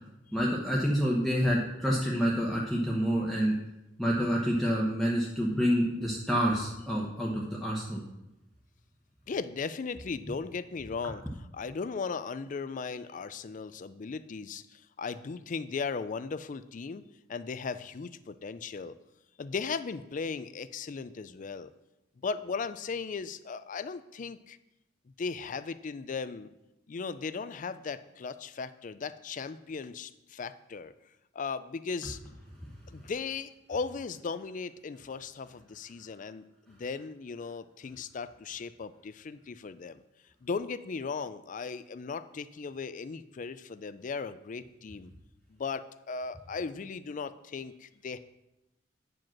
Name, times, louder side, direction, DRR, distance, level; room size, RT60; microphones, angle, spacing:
voice 1, 0.3-3.5 4.0-8.0, equal, ahead, -4 dB, 1.0 m, -28 dB
voice 2, 9.3-11.2 11.5-17.0 17.3-19.0 19.4-21.7 22.2-24.6 25.2-26.5 26.9-30.9 31.3-32.2 32.9-40.0 40.4-45.1 45.5-48.2, left 5 dB, 45° left, 14 dB, 0.4 m, -37 dB
9.2 x 5.0 x 6.0 m, 0.94 s
head